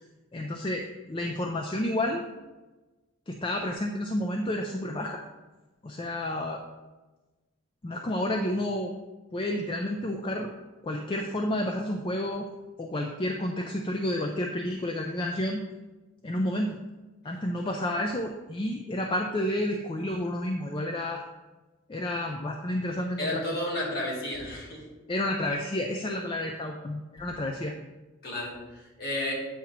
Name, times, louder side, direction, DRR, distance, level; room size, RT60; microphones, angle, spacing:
voice 1, 0.3-2.2 3.3-5.2 5.8-6.6 7.8-8.9 9.3-10.5 10.8-12.5 12.8-15.6 16.2-16.8 17.2-21.2 21.9-23.4 25.1-27.7, left 1 dB, 25° left, 2 dB, 0.4 m, -30 dB
voice 2, 23.2-24.8 28.2-29.3, left 1 dB, 45° left, -4 dB, 2.2 m, -32 dB
8.5 x 2.9 x 5.8 m, 1.2 s
head